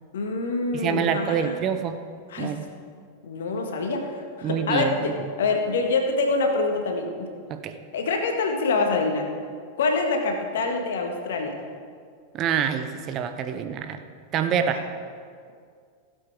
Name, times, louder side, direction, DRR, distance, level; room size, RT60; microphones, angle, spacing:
voice 1, 0.1-1.6 2.3-2.6 3.2-5.1 5.4-7.3 7.9-9.3 9.8-11.5 14.7-14.9, left 3 dB, 60° left, 3 dB, 1.6 m, -25 dB
voice 2, 0.7-2.0 2.4-2.7 4.4-5.1 7.5-7.8 12.3-14.0 14.3-14.8, right 8 dB, 35° right, 8 dB, 0.8 m, -26 dB
16.0 x 7.9 x 4.7 m, 2.1 s
figure-of-eight pair, 90°, 0 cm